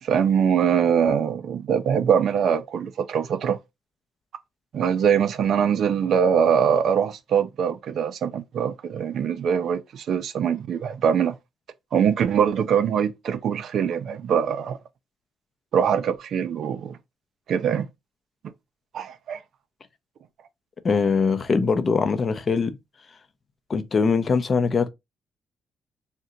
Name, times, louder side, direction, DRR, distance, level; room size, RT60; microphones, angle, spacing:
voice 1, 0.0-3.6 4.7-11.4 11.9-14.8 15.7-17.0 17.5-17.9 18.9-19.4, right 7 dB, 65° right, 0.4 m, -23 dB
voice 2, 20.8-22.8 23.7-24.9, left 5 dB, 40° left, 0.5 m, -22 dB
2.8 x 2.1 x 3.7 m
cardioid pair, 90°, 0 cm